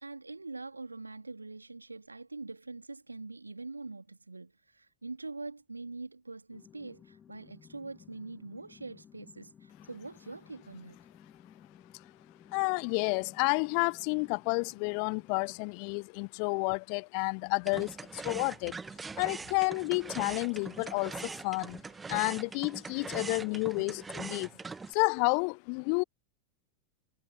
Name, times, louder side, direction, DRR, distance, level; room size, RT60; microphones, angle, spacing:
voice 1, 0.0-11.0, right 3 dB, 80° right, 2.4 m, -44 dB
sound 1, 6.5-15.6, left 8 dB, 25° left, 1.7 m, -57 dB
voice 2, 12.5-18.7 19.2-21.8 22.1-24.5 24.9-26.0, left 40 dB or more, 45° left, 0.5 m, -30 dB
sound 2, 17.6-24.9, right 4 dB, 15° right, 1.3 m, -42 dB
figure-of-eight pair, 90°, 0 cm